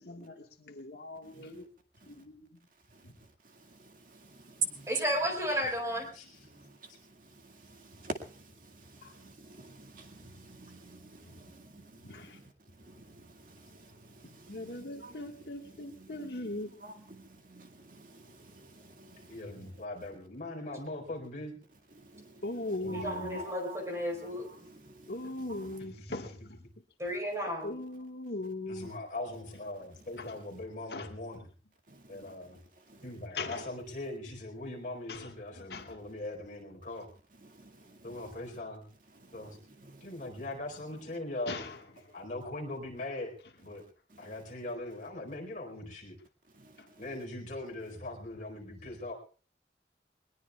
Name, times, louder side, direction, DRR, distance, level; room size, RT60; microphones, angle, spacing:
voice 1, 0.0-1.7 2.0-2.7 3.0-3.2 9.0-9.1 12.0-12.4 14.2-16.8 22.4-23.5 25.1-26.6 27.6-28.9 29.7-29.8 30.2-30.3 30.9-31.4 33.3-33.7 35.1-36.0 41.5-42.2 46.8-46.9, left 2 dB, 65° left, 1.7 m, -40 dB
voice 2, 3.4-4.9 6.5-12.5 12.8-15.3 15.6-19.7 22.0-22.4 22.9-23.8 24.1-25.1 25.5-25.7 31.9-32.3 32.9-33.0 37.4-38.3 39.1-40.1 44.1-44.3 46.5-47.0, right 4 dB, 50° right, 2.1 m, -46 dB
voice 3, 4.9-6.1 22.9-24.5 27.0-27.7, equal, 15° right, 4.5 m, -33 dB
voice 4, 19.3-21.6 22.8-23.4 25.8-26.3 28.7-31.4 32.1-32.6 33.0-37.1 38.0-38.8 39.3-39.6 40.0-41.6 42.1-43.3 43.6-43.8 44.2-46.2 47.0-49.1, left 2 dB, 45° left, 4.5 m, -41 dB
22.0 x 20.5 x 2.4 m
head